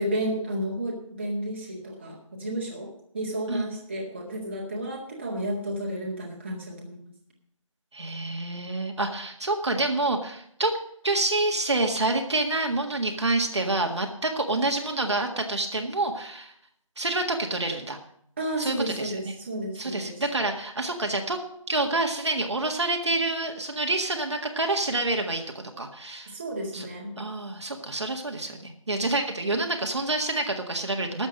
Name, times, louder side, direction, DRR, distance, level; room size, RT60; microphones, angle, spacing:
voice 1, 0.0-7.1 18.4-20.2 26.3-27.2, right 1 dB, 20° right, -2 dB, 1.9 m, -32 dB
voice 2, 7.9-10.7 11.0-16.5 17.0-18.0 18.6-19.3 19.8-21.4 21.7-26.3 26.7-26.9 27.2-31.3, right 2 dB, 55° right, 3 dB, 1.8 m, -27 dB
12.5 x 7.3 x 7.5 m, 0.70 s
figure-of-eight pair, 175°, 17 cm